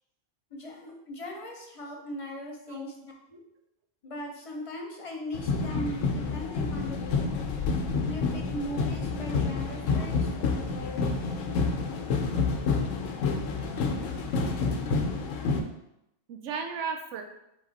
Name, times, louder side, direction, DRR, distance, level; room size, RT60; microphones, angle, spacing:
voice 1, 0.5-3.4 4.0-7.3 8.0-11.3, equal, 35° left, 0 dB, 0.6 m, -39 dB
sound 1, 5.3-15.6, left 4 dB, 85° left, 1.0 m, -29 dB
voice 2, 11.2-11.6 16.3-17.2, right 5 dB, 80° right, 4 dB, 0.9 m, -36 dB
3.6 x 3.5 x 4.0 m, 0.83 s
omnidirectional pair, 1.3 m